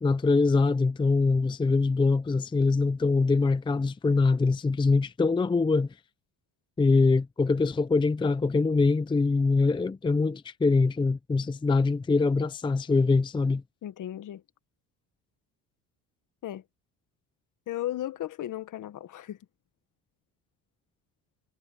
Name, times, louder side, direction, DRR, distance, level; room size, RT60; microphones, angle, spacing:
voice 1, 0.0-5.9 6.8-13.6, left 3 dB, 15° left, 0.6 m, -23 dB
voice 2, 13.8-14.4 16.4-16.6 17.7-19.4, left 13 dB, 55° left, 1.6 m, -35 dB
cardioid pair, 120°, 37 cm